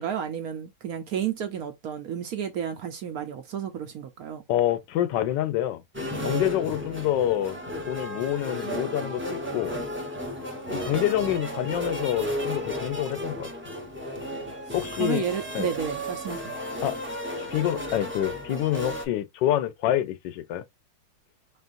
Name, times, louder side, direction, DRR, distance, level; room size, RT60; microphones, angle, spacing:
voice 1, 0.0-4.4 15.0-16.5, right 8 dB, 65° right, 1.0 m, -31 dB
voice 2, 4.5-5.8 6.2-7.6 7.9-9.7 10.7-13.5 14.7-15.2 15.5-15.7 16.8-17.0 17.5-20.6, left 12 dB, 80° left, 1.2 m, -27 dB
sound 1, 5.9-19.1, equal, 10° right, 0.6 m, -33 dB
4.5 x 3.4 x 2.5 m
omnidirectional pair, 2.0 m